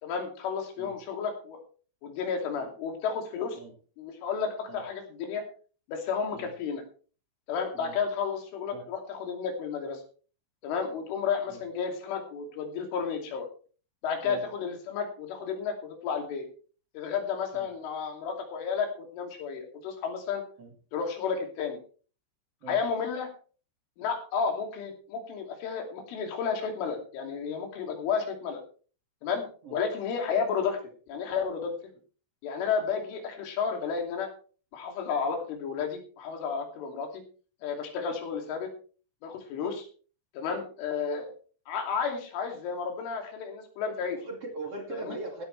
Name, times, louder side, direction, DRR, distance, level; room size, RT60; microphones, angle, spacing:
voice 1, 0.0-1.6 2.0-3.6 4.0-5.4 5.9-6.8 7.5-10.0 10.6-13.5 14.0-16.5 17.0-20.4 20.9-21.8 22.7-23.3 24.0-28.6 29.2-29.5 29.7-30.8 31.1-31.7 32.4-34.3 34.7-37.2 37.6-38.7 39.2-39.9 40.4-41.3 41.7-44.2 44.9-45.2, left 6 dB, 85° left, 3 dB, 5.3 m, -32 dB
voice 2, 44.1-45.5, right 2 dB, 40° right, 1 dB, 2.7 m, -40 dB
16.5 x 12.0 x 3.3 m, 0.39 s
omnidirectional pair, 5.4 m